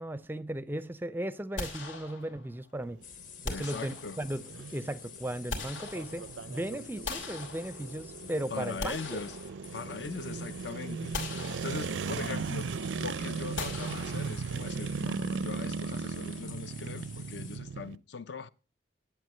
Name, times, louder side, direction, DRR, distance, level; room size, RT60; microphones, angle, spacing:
voice 1, 0.0-3.0 3.4-4.4 4.7-9.2, right 1 dB, 10° right, 0.5 m, -36 dB
sound 1, 1.6-2.6 3.4-4.5 5.2-6.5 7.0-8.2 8.6-10.1 10.4-10.6 11.1-12.2 13.6-14.7, left 3 dB, 90° left, 3.1 m, -41 dB
sound 2, 2.7-18.0, right 5 dB, 75° right, 0.5 m, -38 dB
sound 3, 3.0-17.6, left 9 dB, 45° left, 1.3 m, -50 dB
voice 2, 3.5-4.2 8.2-9.4 9.7-18.5, left 4 dB, 60° left, 0.6 m, -41 dB
11.0 x 8.2 x 6.5 m
head